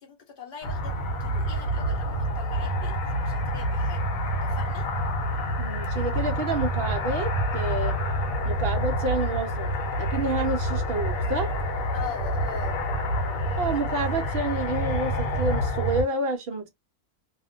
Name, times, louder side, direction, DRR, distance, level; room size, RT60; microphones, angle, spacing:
voice 1, 0.0-4.0 4.4-4.9 11.9-12.9, left 6 dB, 45° left, 0.9 m, -41 dB
sound 1, 0.6-16.0, equal, 75° left, 1.0 m, -27 dB
voice 2, 5.6-8.0 8.4-9.7 10.0-11.5 13.6-16.7, right 2 dB, 65° right, 0.6 m, -29 dB
2.4 x 2.1 x 2.5 m
omnidirectional pair, 1.5 m